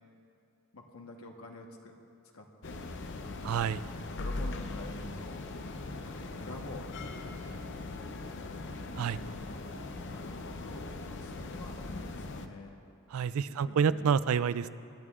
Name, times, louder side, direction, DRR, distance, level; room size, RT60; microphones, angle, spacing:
voice 1, 0.7-2.0 2.3-2.8 3.2-3.6 4.1-5.4 6.1-7.6 9.2-12.7 13.5-14.0, left 2 dB, 80° left, 2 dB, 1.3 m, -48 dB
sound 1, 2.6-12.5, left 2 dB, 60° left, 0.7 m, -40 dB
voice 2, 3.4-3.8 9.0-9.2 13.1-14.7, right 7 dB, 75° right, 15 dB, 0.4 m, -28 dB
26.0 x 11.0 x 2.5 m, 2.6 s
head